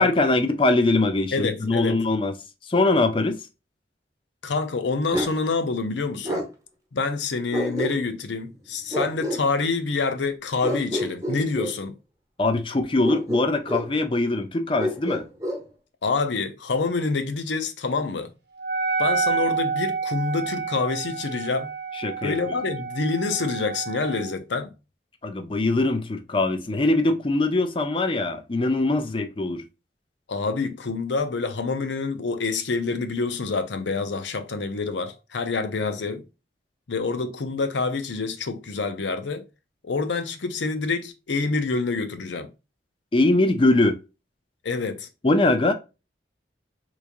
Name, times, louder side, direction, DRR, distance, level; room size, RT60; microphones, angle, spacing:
voice 1, 0.0-2.3 2.7-3.4 12.4-15.2 21.9-22.6 25.2-29.6 43.1-44.0 45.2-45.7, left 2 dB, 30° left, 0.5 m, -22 dB
voice 2, 1.3-2.0 4.4-6.5 6.9-11.9 16.0-18.3 19.0-21.7 22.2-24.7 30.3-36.2 36.9-39.4 39.8-42.5 44.6-45.1, left 4 dB, 85° left, 0.6 m, -27 dB
Bark, 5.1-5.4 6.2-6.5 7.5-8.2 8.9-9.4 10.6-11.8 13.0-13.9 14.8-15.6, equal, 20° right, 0.8 m, -28 dB
Wind instrument woodwind instrument, 18.6-24.3, right 5 dB, 60° right, 1.0 m, -29 dB
3.5 x 3.1 x 2.5 m
head